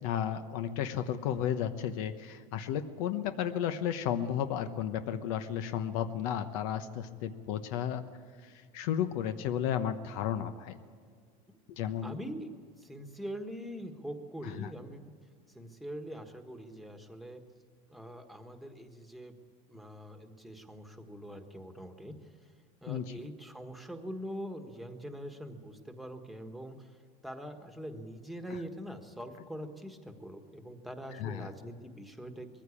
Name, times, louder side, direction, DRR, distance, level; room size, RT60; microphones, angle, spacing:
voice 1, 0.0-8.0 8.4-10.8 11.7-12.2 14.4-14.7 22.9-23.1 31.2-31.5, left 9 dB, 75° left, 9 dB, 1.1 m, -33 dB
voice 2, 12.0-15.1 15.5-17.4 17.9-19.3 19.7-22.5 22.8-27.0 27.2-32.6, equal, ahead, 6 dB, 1.4 m, -43 dB
21.0 x 15.0 x 8.5 m, 2.1 s
cardioid pair, 145°, 18 cm